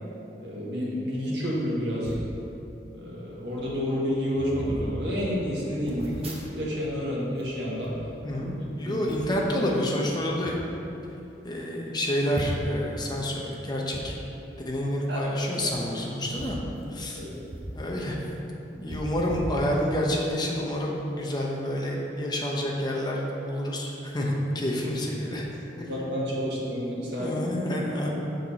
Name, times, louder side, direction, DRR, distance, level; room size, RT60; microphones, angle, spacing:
voice 1, 0.4-2.2 2.9-7.9 8.3-8.4 8.8-9.0 15.1-15.2 15.5-15.7 17.2-17.3 25.8-27.3, equal, 75° right, -5 dB, 1.8 m, -30 dB
sound 1, 2.0-2.3 3.1-3.2 3.5-3.7 4.3-4.9 5.9-6.9 7.2-8.6 9.1-9.4 10.2-10.6 11.1-11.2 11.4-11.5 12.3-12.8 13.9-14.0 15.5-15.7 16.3-17.8 18.1-18.2 18.9-20.1 20.6-20.7, right 1 dB, 35° right, 1.1 m, -39 dB
voice 2, 8.2-10.6 11.4-14.1 14.6-16.6 16.9-17.2 17.7-18.3 18.7-25.5 25.8-25.9 27.1-28.1, equal, 25° left, -2 dB, 1.0 m, -28 dB
6.7 x 6.6 x 4.3 m, 2.9 s
head